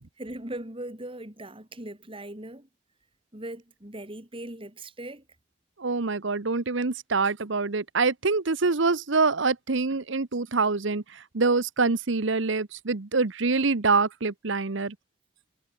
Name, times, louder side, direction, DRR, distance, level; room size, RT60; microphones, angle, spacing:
voice 1, 0.2-2.7 3.3-5.2, right 1 dB, 25° right, 3.5 m, -39 dB
voice 2, 5.8-14.9, right 4 dB, 65° right, 1.0 m, -25 dB
head